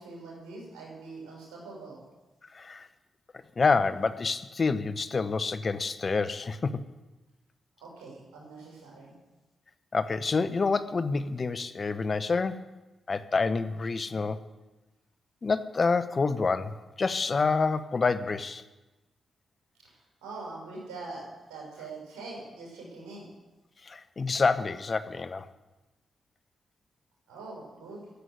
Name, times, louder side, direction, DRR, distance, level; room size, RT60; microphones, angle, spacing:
voice 1, 0.0-2.0 7.8-9.1 19.9-23.3 27.3-28.0, right 3 dB, 85° right, -2 dB, 5.9 m, -43 dB
voice 2, 2.5-2.9 3.6-6.8 9.9-12.7 13.1-14.4 15.4-18.6 23.8-25.5, left 4 dB, 45° left, 12 dB, 0.9 m, -28 dB
15.0 x 8.0 x 9.5 m, 1.1 s
hypercardioid pair, 40°, 0 cm